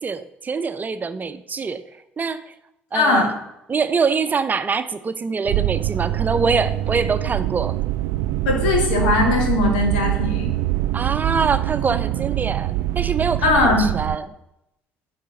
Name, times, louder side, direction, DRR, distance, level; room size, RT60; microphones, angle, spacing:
voice 1, 0.0-1.8 2.2-2.4 2.9-3.3 3.7-7.8 10.9-14.3, right 5 dB, 35° right, 11 dB, 0.7 m, -24 dB
voice 2, 2.9-3.3 8.5-10.5 13.4-13.9, left 3 dB, 85° left, 1 dB, 2.1 m, -19 dB
sound 1, 5.5-14.2, right 16 dB, 75° right, 0.4 m, -24 dB
9.9 x 4.3 x 7.1 m, 0.85 s
hypercardioid pair, 55°, 5 cm